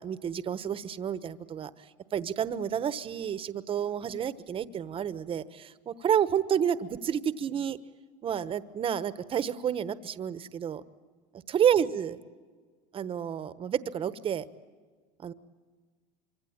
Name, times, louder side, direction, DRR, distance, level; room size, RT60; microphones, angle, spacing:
voice 1, 0.0-1.7 2.1-7.8 8.2-10.8 11.5-12.2 12.9-14.4 15.2-15.3, right 8 dB, 30° right, 14 dB, 1.1 m, -30 dB
25.5 x 24.5 x 8.8 m, 1.5 s
supercardioid pair, 125°, 18 cm